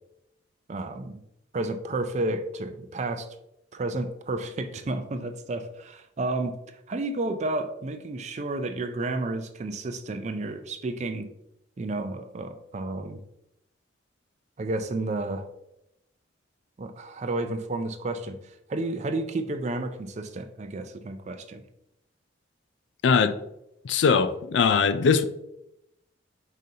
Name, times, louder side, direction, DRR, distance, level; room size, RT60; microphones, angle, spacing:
voice 1, 0.7-1.2 1.5-3.3 3.7-6.6 6.9-11.3 11.8-13.2 14.6-15.5 16.8-18.4 18.7-21.6, right 2 dB, 35° right, 0.4 m, -31 dB
voice 2, 23.0-23.4 23.8-25.3, left 5 dB, 70° left, 0.3 m, -21 dB
4.9 x 3.9 x 2.7 m
head